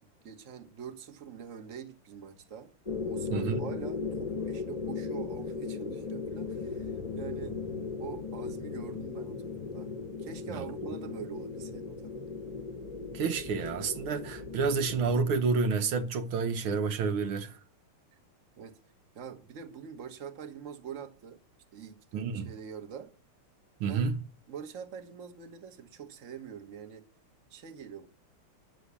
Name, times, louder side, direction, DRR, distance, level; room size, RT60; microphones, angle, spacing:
voice 1, 0.0-2.7 3.0-7.6 8.0-9.9 10.2-12.2 18.6-18.8 19.1-21.4 21.7-23.1 23.9-24.1 24.5-27.0 27.5-28.1, right 7 dB, 40° right, 1.5 m, -44 dB
sound 1, 2.9-15.4, left 4 dB, 20° left, 1.0 m, -37 dB
voice 2, 3.3-3.7 10.5-10.6 13.1-17.6 22.1-22.5 23.8-24.2, right 5 dB, 75° right, 1.8 m, -29 dB
10.0 x 7.4 x 8.2 m
omnidirectional pair, 2.4 m